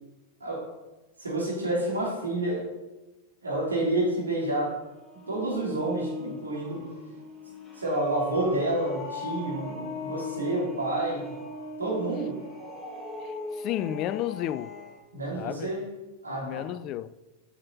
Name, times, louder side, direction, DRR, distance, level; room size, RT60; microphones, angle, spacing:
voice 1, 0.4-0.7 1.2-2.7 3.4-4.8 5.3-6.9 7.7-11.4 11.8-12.4 15.1-15.9 16.2-16.7, right 1 dB, 75° right, 3.0 m, -29 dB
sound 1, 4.5-15.0, left 1 dB, ahead, 2.4 m, -39 dB
voice 2, 13.2-14.7 15.3-15.7 16.4-17.1, left 12 dB, 35° left, 0.3 m, -32 dB
7.4 x 6.0 x 5.6 m
figure-of-eight pair, 90°, 0 cm